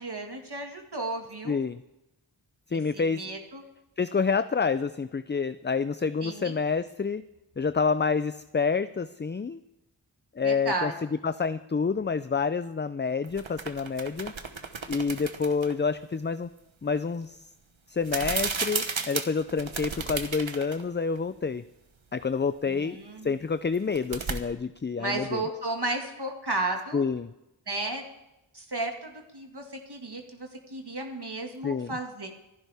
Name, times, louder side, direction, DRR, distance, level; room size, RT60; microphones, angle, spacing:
voice 1, 0.0-1.6 2.7-3.6 6.2-6.6 10.4-10.9 22.6-23.4 25.0-27.0 27.7-28.0 28.5-32.3, right 2 dB, 55° right, 2 dB, 2.0 m, -34 dB
voice 2, 1.5-1.8 2.7-3.2 4.0-7.2 7.6-9.6 10.4-10.9 11.2-14.3 14.9-16.5 16.8-17.4 17.9-21.6 22.1-23.0 23.2-25.4 26.9-27.3 31.6-32.0, left 5 dB, 25° left, 13 dB, 0.4 m, -28 dB
sound 1, 13.2-15.8 18.0-20.8 21.2-21.3 23.7-24.4, right 4 dB, 80° right, 1.2 m, -33 dB
26.5 x 10.5 x 3.5 m, 0.93 s
wide cardioid pair, 40°, 46 cm